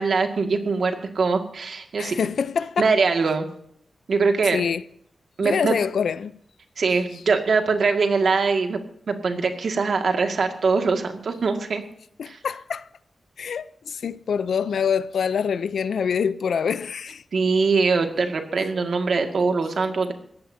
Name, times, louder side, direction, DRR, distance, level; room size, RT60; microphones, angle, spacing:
voice 1, 0.0-2.2 2.8-3.5 4.1-4.6 5.4-5.7 6.8-8.8 9.1-11.8 12.3-12.4 17.3-20.1, right 4 dB, 60° right, 2.1 m, -22 dB
voice 2, 2.0-2.9 4.5-4.8 5.4-6.4 12.2-12.9 13.4-17.2, left 7 dB, 90° left, 0.7 m, -25 dB
22.0 x 17.0 x 2.8 m
wide cardioid pair, 180°, 0 cm